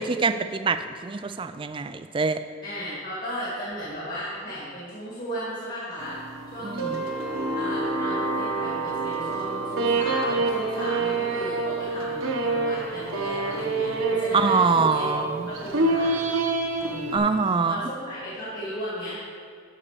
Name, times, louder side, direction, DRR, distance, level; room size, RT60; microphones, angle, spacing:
voice 1, 0.0-2.4 6.6-7.0 14.3-15.5 17.1-17.9, right 4 dB, 25° right, 10 dB, 0.3 m, -24 dB
voice 2, 2.6-6.2 6.5-7.0 7.5-15.1 15.5-16.3 16.8-19.2, equal, 40° left, -8 dB, 2.4 m, -35 dB
sound 1, 6.0-17.2, right 3 dB, 70° right, 1.0 m, -27 dB
12.0 x 4.3 x 6.8 m, 2.1 s
head